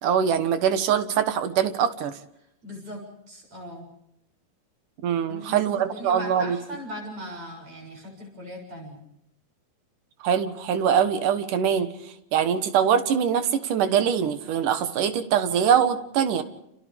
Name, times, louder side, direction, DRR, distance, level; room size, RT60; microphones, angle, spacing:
voice 1, 0.0-2.2 5.0-6.6 10.2-16.4, right 8 dB, 65° right, 10 dB, 2.7 m, -23 dB
voice 2, 2.4-3.9 5.3-9.0, equal, 35° right, 2 dB, 8.0 m, -39 dB
30.0 x 29.5 x 3.5 m, 0.80 s
omnidirectional pair, 4.2 m